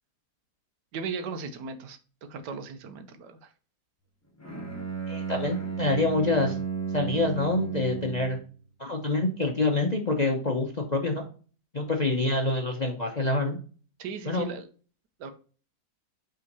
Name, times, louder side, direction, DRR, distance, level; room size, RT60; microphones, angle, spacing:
voice 1, 0.9-2.0 2.3-3.5 14.0-14.7 15.2-15.3, right 5 dB, 80° right, 10 dB, 1.4 m, -37 dB
Bowed string instrument, 4.4-8.5, right 6 dB, 10° left, 1.0 m, -33 dB
voice 2, 5.1-6.6 6.9-8.4 8.8-11.3 11.7-13.6 14.3-14.5, left 2 dB, 40° left, 2 dB, 0.6 m, -26 dB
5.6 x 3.7 x 5.3 m, 0.39 s
omnidirectional pair, 1.8 m